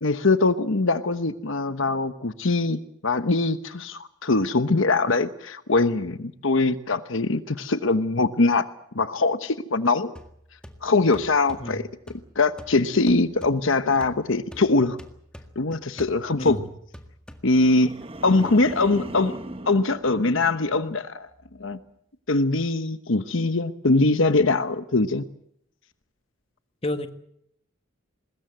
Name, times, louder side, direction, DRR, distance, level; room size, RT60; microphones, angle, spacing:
voice 1, 0.0-8.7 8.9-10.2 10.8-11.8 12.4-15.0 15.6-16.6 17.4-17.9 18.2-19.4 19.7-21.3 21.6-21.8 22.3-25.2, left 3 dB, 65° left, 11 dB, 1.0 m, -22 dB
sound 1, 10.2-17.9, equal, 5° left, 1.8 m, -47 dB
voice 2, 16.4-16.7 18.3-18.4 26.8-27.1, left 1 dB, 30° left, 8 dB, 1.5 m, -30 dB
sound 2, 17.5-20.9 21.3-21.7, right 1 dB, 25° right, 1.2 m, -39 dB
22.5 x 21.0 x 7.8 m, 0.72 s
head